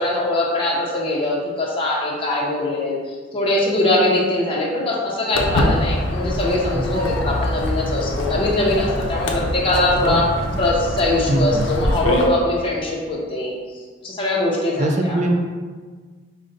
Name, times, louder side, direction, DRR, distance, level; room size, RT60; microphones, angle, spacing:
voice 1, 0.0-10.3 10.6-13.6 14.0-15.2, left 1 dB, 30° left, -4 dB, 0.7 m, -22 dB
Walk footsteps, 5.3-12.3, left 1 dB, 80° left, 0.5 m, -24 dB
voice 2, 11.3-11.6 14.8-15.3, right 1 dB, 35° right, 3 dB, 0.4 m, -21 dB
5.0 x 2.2 x 3.8 m, 1.5 s
head